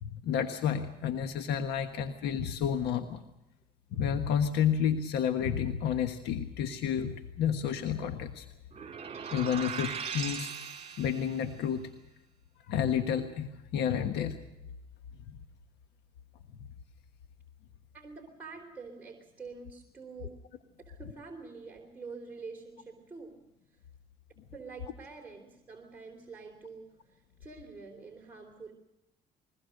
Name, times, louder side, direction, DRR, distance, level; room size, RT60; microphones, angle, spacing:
voice 1, 0.0-3.2 3.9-8.5 9.3-10.5 11.0-11.9 12.6-14.4 15.3-15.4, left 8 dB, 85° left, 7 dB, 1.4 m, -30 dB
sound 1, 8.7-11.5, right 7 dB, 35° right, 2.7 m, -39 dB
voice 2, 17.9-20.3 20.8-23.4 24.5-28.7, right 4 dB, 10° right, 0 dB, 3.7 m, -46 dB
22.0 x 20.5 x 6.6 m, 0.91 s
cardioid pair, 110°, 17 cm